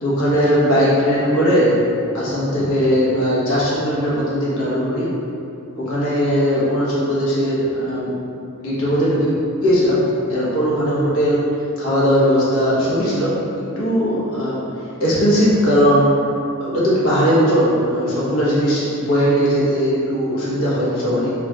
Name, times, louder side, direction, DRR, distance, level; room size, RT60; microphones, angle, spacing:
voice 1, 0.0-1.8 2.1-5.1 5.7-8.1 8.6-9.4 9.6-11.4 11.8-13.4 13.8-14.6 15.0-16.1 16.6-21.3, equal, 70° left, -9 dB, 1.0 m, -18 dB
4.2 x 2.3 x 2.8 m, 2.6 s
head